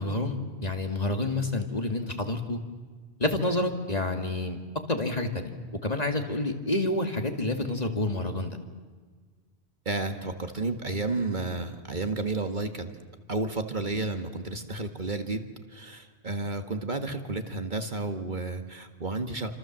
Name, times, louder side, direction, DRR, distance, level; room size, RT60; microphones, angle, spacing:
voice 1, 0.0-2.6 3.2-4.6 4.9-5.5 5.8-8.6, left 2 dB, 35° left, 5 dB, 2.4 m, -28 dB
voice 2, 9.9-12.9 13.3-19.5, right 3 dB, 45° right, 6 dB, 1.9 m, -32 dB
29.0 x 26.0 x 7.6 m, 1.5 s
omnidirectional pair, 1.1 m